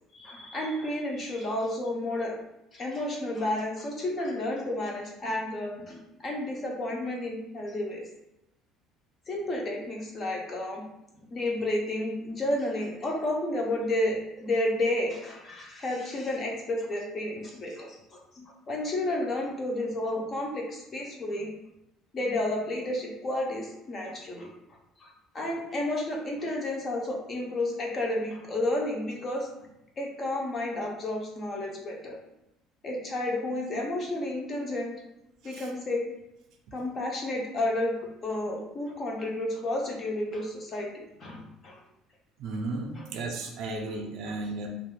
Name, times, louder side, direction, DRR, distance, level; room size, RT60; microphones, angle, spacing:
voice 1, 0.1-2.3 2.7-8.0 9.3-10.8 11.3-18.0 18.4-21.5 22.1-24.5 25.0-29.5 30.0-32.2 32.8-34.9 35.4-36.0 36.7-38.0 38.2-41.8, left 1 dB, 25° left, 0 dB, 0.4 m, -31 dB
voice 2, 42.4-44.7, right 2 dB, 50° right, 2 dB, 0.4 m, -34 dB
2.3 x 2.1 x 3.0 m, 0.85 s
cardioid pair, 180°, 0 cm